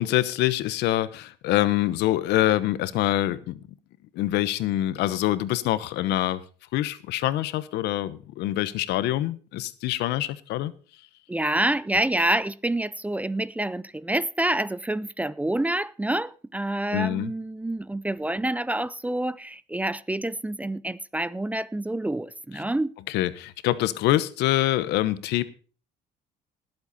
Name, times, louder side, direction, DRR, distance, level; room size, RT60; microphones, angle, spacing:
voice 1, 0.0-3.6 4.1-6.4 6.7-10.7 16.9-17.3 23.1-25.4, left 14 dB, 85° left, 1.1 m, -25 dB
voice 2, 11.3-22.9, right 1 dB, 10° right, 0.5 m, -27 dB
19.0 x 8.0 x 4.2 m
cardioid pair, 110°, 17 cm